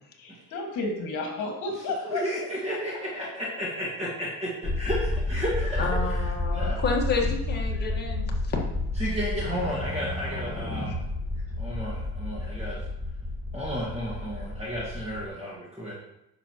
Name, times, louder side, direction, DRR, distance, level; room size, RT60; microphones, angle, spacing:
voice 1, 0.2-2.3, left 2 dB, 60° left, 1 dB, 1.9 m, -32 dB
voice 2, 2.0-6.2 6.5-6.8 9.0-11.0 11.6-12.8 13.5-15.9, equal, 20° right, -5 dB, 1.8 m, -32 dB
sound 1, 4.6-15.3, left 2 dB, 5° left, 1.3 m, -30 dB
voice 3, 5.8-8.6 10.9-11.0, left 4 dB, 30° left, -1 dB, 1.6 m, -30 dB
10.0 x 6.7 x 3.0 m, 0.86 s
cardioid pair, 155°, 35 cm